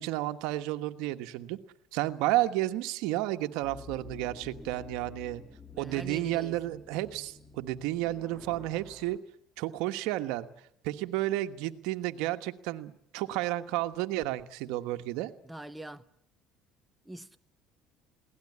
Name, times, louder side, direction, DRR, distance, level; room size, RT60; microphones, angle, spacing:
voice 1, 0.0-1.6 1.9-5.4 5.8-9.2 9.6-10.5 10.8-15.3, right 16 dB, 80° right, 1.3 m, -32 dB
sound 1, 3.6-9.2, left 4 dB, 10° left, 1.9 m, -50 dB
voice 2, 5.7-6.6 15.4-16.0 17.1-17.4, right 1 dB, 5° right, 0.8 m, -43 dB
22.0 x 17.5 x 9.8 m
supercardioid pair, 100°, 0 cm